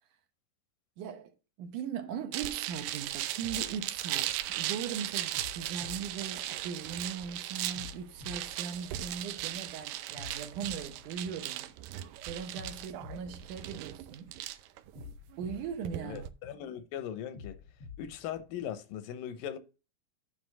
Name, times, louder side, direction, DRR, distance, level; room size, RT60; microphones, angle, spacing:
voice 1, 1.0-11.7 12.0-14.6 15.4-16.3, right 7 dB, 70° right, 2.3 m, -40 dB
sound 1, 2.3-16.3, right 13 dB, 90° right, 2.4 m, -37 dB
sound 2, 3.4-4.7 5.3-7.1 7.7-9.5 10.1-11.9 12.5-14.3 14.9-16.7 17.3-18.7, left 6 dB, 65° left, 1.5 m, -50 dB
voice 2, 16.0-17.6 18.0-19.6, left 10 dB, 80° left, 2.5 m, -39 dB
9.8 x 3.4 x 6.8 m
omnidirectional pair, 3.9 m